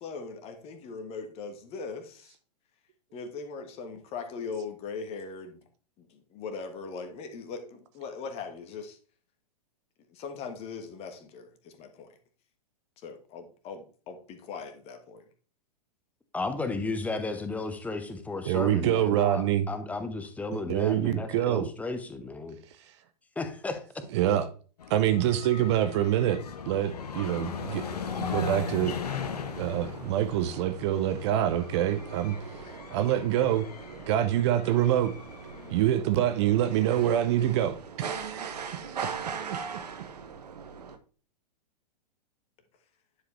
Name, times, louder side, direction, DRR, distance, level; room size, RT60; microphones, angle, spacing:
voice 1, 0.0-2.4 3.1-5.6 6.0-9.0 10.1-12.2 13.0-15.2, left 5 dB, 30° left, 1.3 m, -40 dB
voice 2, 16.3-22.6 23.4-23.8, left 3 dB, 5° left, 0.9 m, -34 dB
voice 3, 18.4-19.7 20.5-21.7 24.1-24.5 24.9-27.8 28.2-29.0 29.6-32.4 32.9-33.7 34.1-35.1 35.7-39.1, right 11 dB, 45° right, 0.7 m, -26 dB
sound 1, 24.8-35.8, left 7 dB, 70° left, 0.9 m, -39 dB
sound 2, 27.3-41.0, right 6 dB, 70° right, 0.9 m, -41 dB
10.0 x 4.8 x 3.2 m
figure-of-eight pair, 105°, 21 cm